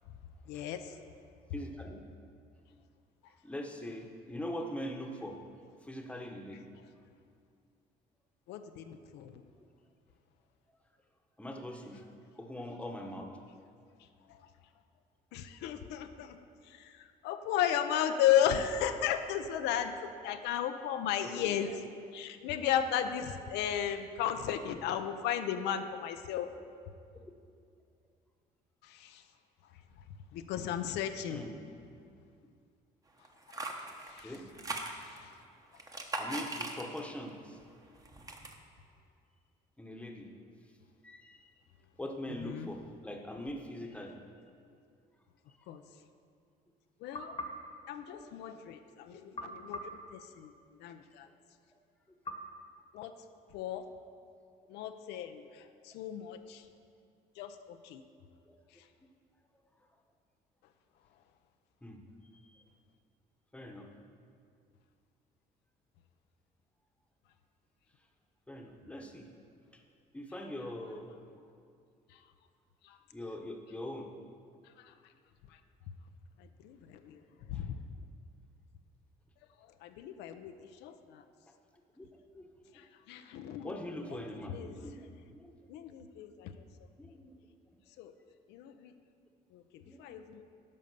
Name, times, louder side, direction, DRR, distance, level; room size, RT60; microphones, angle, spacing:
voice 1, 0.5-1.0 8.5-9.4 14.3-14.5 15.3-21.8 22.1-26.5 28.8-29.2 30.3-31.4 33.5-33.6 34.0-34.4 34.9-35.3 42.3-42.7 45.7-45.8 47.0-47.4 47.9-50.5 50.8-51.3 52.9-53.1 53.5-53.8 54.7-56.7 57.4-58.0 58.8-58.9 72.1-72.2 72.8-73.0 74.6-74.9 75.5-75.6 76.4-77.2 77.5-77.8 79.8-81.2 82.7-84.2 84.5-84.8 85.7-86.6 88.0-88.1 88.5-88.9 89.5-90.4, left 9 dB, 90° left, 8 dB, 0.6 m, -35 dB
voice 2, 1.5-2.0 3.4-5.4 5.9-6.7 11.4-12.1 12.4-13.3 21.2-21.6 31.3-31.5 34.2-34.4 36.2-37.6 39.8-40.3 41.0-41.4 42.0-44.2 48.1-48.2 49.1-49.6 58.5-58.6 61.8-62.0 62.5-62.6 63.5-63.9 68.5-69.3 70.1-71.1 73.1-74.1 77.5-77.6 82.0-82.1 82.3-82.4 83.6-85.5 87.0-87.3 89.8-90.2, left 1 dB, 5° left, 2 dB, 1.0 m, -42 dB
sound 1, 33.2-35.3 35.7-37.2 37.6-38.6, right 2 dB, 20° right, 1.1 m, -40 dB
sound 2, 47.1-48.7 49.3-51.0 52.2-53.6, left 1 dB, 30° left, 1.1 m, -46 dB
11.0 x 5.2 x 6.8 m, 2.3 s
cardioid pair, 110°, 17 cm